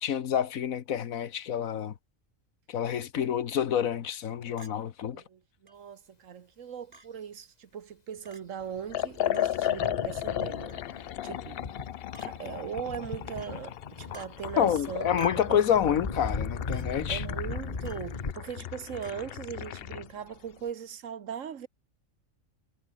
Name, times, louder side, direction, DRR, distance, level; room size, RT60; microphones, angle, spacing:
voice 1, 0.0-1.9 2.7-5.2 14.6-17.2, left 9 dB, 85° left, 1.5 m, -28 dB
Chink clink, 4.6-4.8 5.7-5.8 6.9-7.1 8.3-8.4 9.3-9.5 10.7-10.9 12.1-12.3 13.4-13.6 14.1-14.3 15.2-15.5 16.7-16.9 17.8-18.1 19.0-19.2, right 3 dB, 45° right, 3.4 m, -47 dB
voice 2, 5.1-10.8 11.2-11.6 12.2-15.1 15.5-16.0 17.1-21.7, right 8 dB, 70° right, 1.5 m, -39 dB
Thunder, 8.6-18.3, left 3 dB, 30° left, 1.6 m, -39 dB
Liquid, 8.9-20.1, left 12 dB, 60° left, 0.6 m, -35 dB
omnidirectional pair, 1.4 m